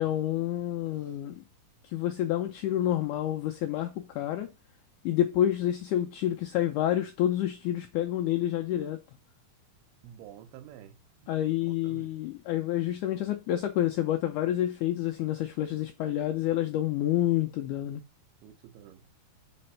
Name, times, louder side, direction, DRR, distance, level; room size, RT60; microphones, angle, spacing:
voice 1, 0.0-1.4 1.9-4.5 5.1-9.0 11.3-18.0, left 12 dB, 90° left, 1.7 m, -28 dB
voice 2, 10.0-11.0 11.2-11.3 11.6-12.1 18.4-19.0, right 10 dB, 85° right, 2.8 m, -49 dB
5.1 x 4.2 x 5.5 m
omnidirectional pair, 4.4 m